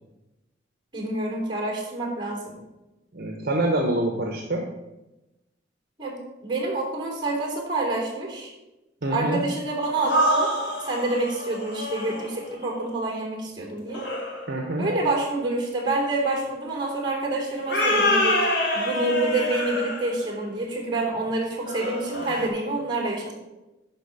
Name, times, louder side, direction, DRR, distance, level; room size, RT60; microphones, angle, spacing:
voice 1, 0.9-2.6 6.0-8.5 9.1-10.5 10.9-14.0 14.8-23.3, right 2 dB, 25° right, 0 dB, 3.3 m, -27 dB
voice 2, 3.1-4.7 9.0-9.4 14.5-14.8, right 1 dB, 55° right, 2 dB, 1.1 m, -26 dB
sound 1, 9.9-12.4 13.9-14.5 17.7-20.2 21.7-22.5, left 1 dB, 75° left, 2.2 m, -26 dB
11.5 x 4.3 x 6.6 m, 1.0 s
head